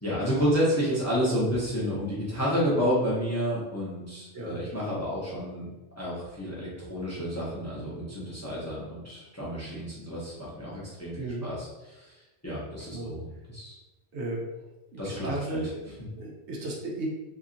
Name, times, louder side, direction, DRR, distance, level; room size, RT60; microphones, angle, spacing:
voice 1, 0.0-5.7 6.0-12.1 12.4-13.8 15.0-15.6, equal, 15° left, -7 dB, 0.6 m, -30 dB
voice 2, 11.1-11.5 12.9-13.1 14.1-14.4 14.9-17.1, right 2 dB, 75° right, -2 dB, 1.0 m, -35 dB
2.8 x 2.7 x 2.5 m, 1.1 s
omnidirectional pair, 1.2 m